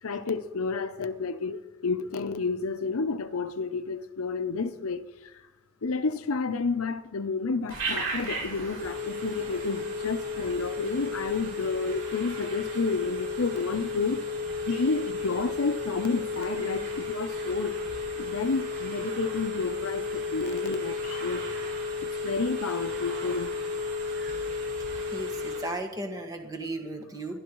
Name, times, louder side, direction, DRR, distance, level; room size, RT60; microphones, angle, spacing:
voice 1, 0.0-5.4 5.8-14.2 14.6-21.5 22.0-23.5, left 4 dB, 75° left, 0.7 m, -30 dB
Telephone, 7.7-25.8, left 3 dB, 75° right, 5.8 m, -33 dB
voice 2, 25.1-27.4, right 2 dB, 15° right, 1.6 m, -35 dB
21.0 x 12.5 x 3.1 m
head